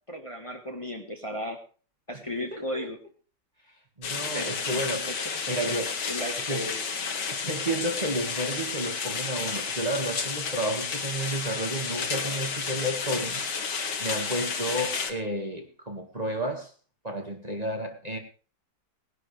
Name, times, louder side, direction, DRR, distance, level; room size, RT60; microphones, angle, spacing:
voice 1, 0.1-1.6 2.1-3.0 4.3-5.8 6.1-6.8, equal, 20° left, 2 dB, 1.7 m, -35 dB
voice 2, 2.5-2.9 4.0-5.1 5.5-5.9 6.5-6.7 7.3-13.5 14.0-16.7 17.0-18.2, right 1 dB, 25° right, 3 dB, 2.0 m, -31 dB
sound 1, 4.0-15.1, left 5 dB, 80° left, 2.2 m, -31 dB
18.5 x 11.5 x 3.4 m, 0.38 s
omnidirectional pair, 1.8 m